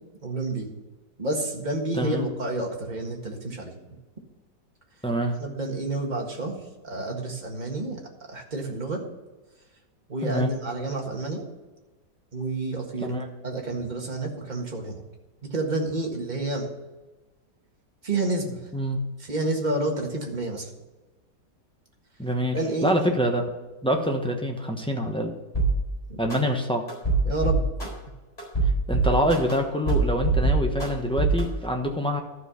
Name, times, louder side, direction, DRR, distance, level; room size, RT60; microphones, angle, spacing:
voice 1, 0.2-0.7 1.2-3.7 5.4-8.0 8.3-9.0 10.1-11.4 12.3-13.1 13.4-15.0 15.4-16.7 18.0-18.7 19.2-20.7 22.5-23.1 26.1-26.2 27.2-27.6, right 2 dB, 25° right, 0 dB, 1.7 m, -29 dB
voice 2, 1.9-2.2 5.0-5.3 10.2-10.5 13.0-13.3 18.7-19.0 22.2-23.4 23.8-25.3 26.2-26.8 28.9-32.2, equal, 5° left, 2 dB, 0.8 m, -25 dB
sound 1, 25.5-25.7 26.3-26.4 26.9-27.9 28.4-29.5 29.9-30.9 31.2-31.4, right 4 dB, 20° left, 4.2 m, -22 dB
12.0 x 5.5 x 6.9 m, 1.2 s
omnidirectional pair, 1.8 m